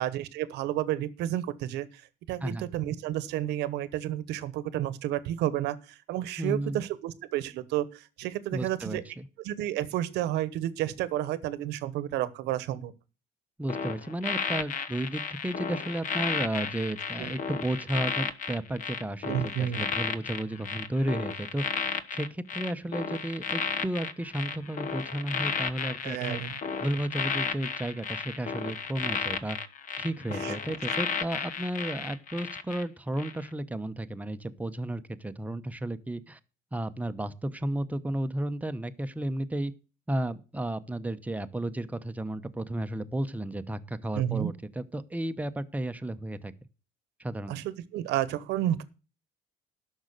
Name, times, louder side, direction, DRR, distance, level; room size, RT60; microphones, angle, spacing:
voice 1, 0.0-1.9 2.3-9.0 9.4-12.9 17.2-17.3 19.2-19.8 26.0-26.6 30.4-30.7 44.1-44.5 47.5-48.8, right 12 dB, 85° right, 17 dB, 1.0 m, -31 dB
voice 2, 6.4-6.8 8.5-9.3 13.6-26.4 26.8-29.6 30.0-36.4 36.7-39.7 40.1-46.5 47.2-47.5, right 1 dB, 10° right, 10 dB, 0.9 m, -33 dB
sound 1, 13.7-32.8 33.2-33.5, left 6 dB, 50° left, 1.0 m, -33 dB
11.5 x 6.4 x 6.6 m, 0.34 s
cardioid pair, 110°, 17 cm